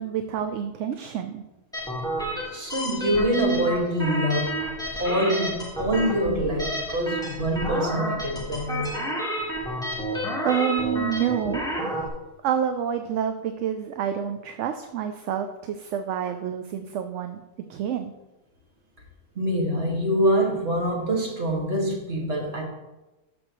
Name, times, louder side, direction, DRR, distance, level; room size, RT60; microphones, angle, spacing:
voice 1, 0.0-1.4 9.5-9.8 10.4-11.7 12.4-17.4 17.7-18.1, right 8 dB, 75° right, 7 dB, 0.9 m, -28 dB
sound 1, 1.7-12.1, equal, 5° left, 1.5 m, -30 dB
voice 2, 2.5-4.7 5.0-9.0 19.4-22.6, equal, 55° right, -1 dB, 2.1 m, -25 dB
12.5 x 6.2 x 3.0 m, 1.0 s
omnidirectional pair, 1.3 m